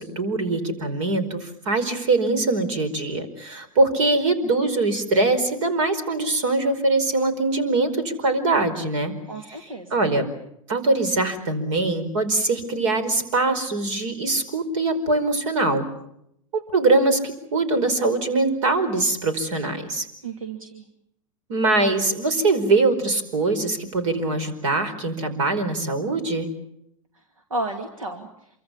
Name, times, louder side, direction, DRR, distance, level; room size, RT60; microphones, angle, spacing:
voice 1, 0.0-9.1 9.5-9.6 9.9-10.3 10.7-15.9 16.5-20.1 21.5-26.5, right 2 dB, 70° right, 12 dB, 4.9 m, -22 dB
voice 2, 9.3-10.0 20.2-20.8 27.5-28.3, right 2 dB, 90° right, 5 dB, 2.6 m, -32 dB
27.5 x 24.5 x 7.1 m, 0.77 s
hypercardioid pair, 90°, 17 cm